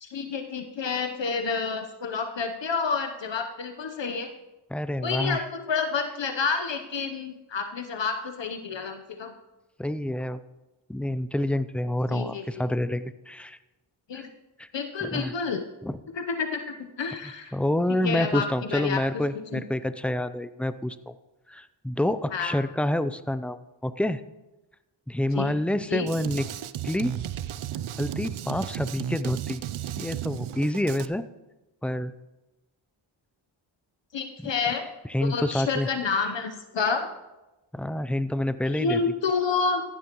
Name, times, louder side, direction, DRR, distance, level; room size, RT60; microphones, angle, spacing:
voice 1, 0.0-4.3 5.0-9.3 12.1-12.6 14.1-14.3 14.7-15.6 16.1-17.5 18.0-18.4 18.7-19.0 19.5-19.6 22.3-22.6 25.3-25.5 25.9-26.1 34.1-34.9 35.2-37.1 38.7-39.8, left 5 dB, 60° left, 6 dB, 0.9 m, -29 dB
voice 2, 4.7-5.4 9.8-10.4 10.9-13.6 14.1-14.3 14.6-14.7 15.0-15.3 15.8-16.0 17.5-21.1 21.5-24.2 25.1-26.5 26.8-27.1 28.0-29.6 30.0-31.3 31.8-32.1 34.4-34.5 35.1-35.9 37.7-39.0, left 1 dB, 5° left, 13 dB, 0.4 m, -28 dB
Drum kit, 26.1-31.1, right 10 dB, 80° right, 0.6 m, -34 dB
15.0 x 11.5 x 3.0 m, 1.0 s
wide cardioid pair, 70°, 48 cm